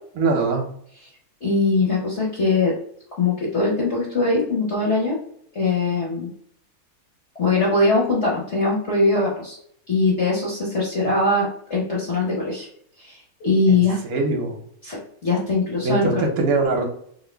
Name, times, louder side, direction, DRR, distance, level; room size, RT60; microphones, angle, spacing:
voice 1, 0.2-0.6 13.7-13.8 14.0-14.6 15.8-16.8, right 3 dB, 60° right, 2 dB, 1.0 m, -22 dB
voice 2, 1.4-2.7 3.1-5.2 5.5-6.3 7.4-9.6 9.9-12.7 13.0-14.0 14.8-16.2, left 3 dB, 45° left, -5 dB, 1.0 m, -21 dB
3.0 x 2.8 x 4.3 m, 0.66 s
omnidirectional pair, 2.4 m